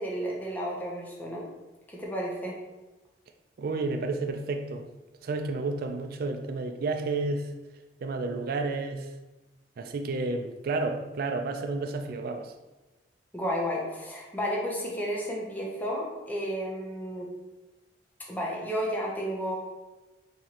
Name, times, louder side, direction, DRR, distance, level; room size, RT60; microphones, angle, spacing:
voice 1, 0.0-1.4 1.9-2.6 13.3-17.3 18.3-19.6, equal, 10° left, -4 dB, 0.6 m, -32 dB
voice 2, 3.6-4.8 5.2-7.5 8.0-9.1 9.8-12.5, right 3 dB, 55° right, 5 dB, 0.3 m, -31 dB
4.0 x 3.0 x 2.8 m, 1.1 s
head